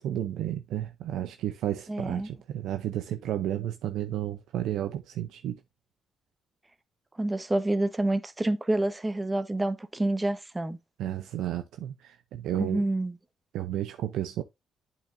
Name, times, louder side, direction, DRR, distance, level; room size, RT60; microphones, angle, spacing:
voice 1, 0.0-5.6 11.0-12.8 13.5-14.4, right 12 dB, 85° right, 0.6 m, -32 dB
voice 2, 1.9-2.3 7.2-10.8 12.6-13.2, right 1 dB, 15° right, 1.1 m, -28 dB
8.3 x 6.9 x 2.6 m
cardioid pair, 90°, 0 cm